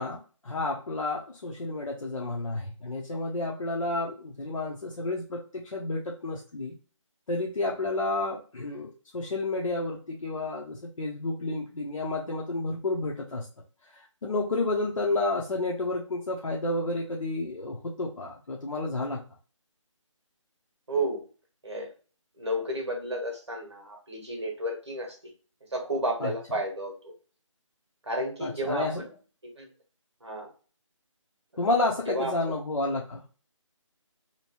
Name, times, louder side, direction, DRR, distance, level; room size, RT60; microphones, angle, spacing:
voice 1, 0.0-6.7 7.3-13.5 13.9-19.2 26.2-26.3 28.4-29.1 31.6-33.2, left 2 dB, 85° left, -2 dB, 0.8 m, -31 dB
voice 2, 20.9-21.2 21.6-21.9 22.4-25.2 25.7-27.1 28.0-29.1 29.4-29.7 30.2-30.5 31.5-31.6 32.1-32.3, right 1 dB, 55° right, 1 dB, 1.3 m, -32 dB
3.0 x 2.8 x 2.9 m, 0.38 s
figure-of-eight pair, 180°, 17 cm